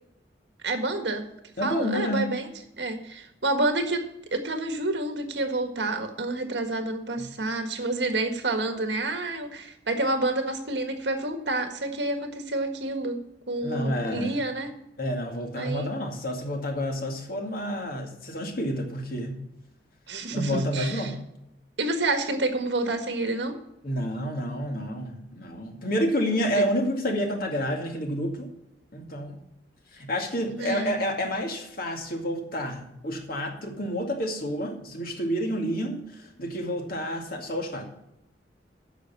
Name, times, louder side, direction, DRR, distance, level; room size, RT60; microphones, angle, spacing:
voice 1, 0.6-1.3 1.6-2.5 2.8-4.0 4.3-13.2 13.5-14.7 15.5-15.9 20.1-21.1 21.8-23.5 26.6-26.7 30.5-30.9, right 2 dB, 85° right, 6 dB, 1.6 m, -28 dB
voice 2, 1.6-2.3 7.2-7.3 13.6-14.4 15.0-19.4 20.3-21.2 23.8-28.5 28.9-29.4 29.9-37.9, equal, 55° left, 2 dB, 2.3 m, -29 dB
9.9 x 6.5 x 6.9 m, 0.84 s
head